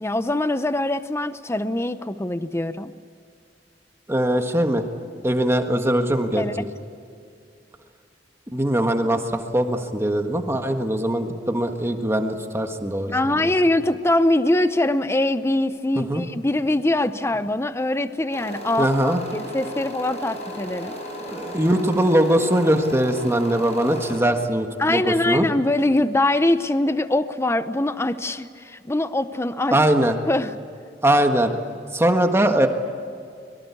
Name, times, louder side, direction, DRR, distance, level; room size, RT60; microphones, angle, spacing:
voice 1, 0.0-2.9 6.4-6.7 13.1-21.0 24.8-29.8 30.3-30.5, left 1 dB, 15° left, 12 dB, 0.7 m, -23 dB
voice 2, 4.1-4.8 5.2-6.6 8.5-13.5 16.1-16.2 18.8-19.2 21.3-25.5 29.7-30.2 31.0-31.5 31.9-32.7, right 1 dB, 15° right, 5 dB, 1.5 m, -21 dB
sound 1, 18.3-24.2, equal, 40° left, 7.0 m, -35 dB
24.5 x 23.0 x 8.4 m, 2.3 s
head